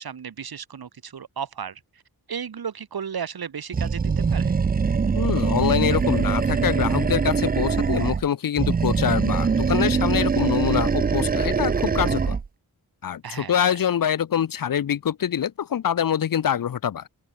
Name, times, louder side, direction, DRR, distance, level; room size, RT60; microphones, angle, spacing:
voice 1, 0.0-1.8 2.3-4.5 13.2-13.7, right 7 dB, 75° right, 3.4 m, -34 dB
Animal, 3.7-8.3 8.6-12.5, right 5 dB, 25° right, 0.4 m, -23 dB
voice 2, 5.1-12.4 13.0-17.1, left 9 dB, 60° left, 0.8 m, -25 dB
open air
wide cardioid pair, 140°, 37 cm